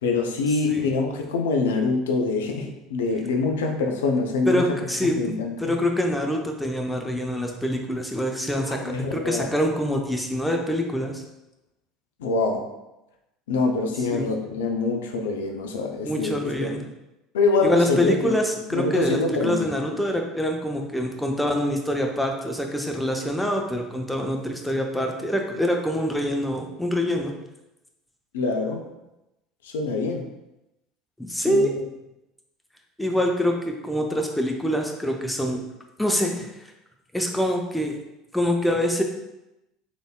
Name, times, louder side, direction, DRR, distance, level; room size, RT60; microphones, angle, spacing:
voice 1, 0.0-5.7 8.7-9.5 12.2-12.6 13.5-16.7 17.3-18.3 18.7-19.7 28.3-28.8 29.6-30.3 31.5-31.8, left 3 dB, 70° left, 4 dB, 0.4 m, -25 dB
voice 2, 4.5-5.2 5.6-11.2 14.1-14.3 16.0-16.8 17.6-27.3 31.2-31.7 33.0-35.6 36.0-36.5 37.1-37.9 38.3-39.0, equal, 5° left, 2 dB, 0.6 m, -25 dB
3.7 x 3.4 x 2.2 m, 0.94 s
figure-of-eight pair, 70°, 0 cm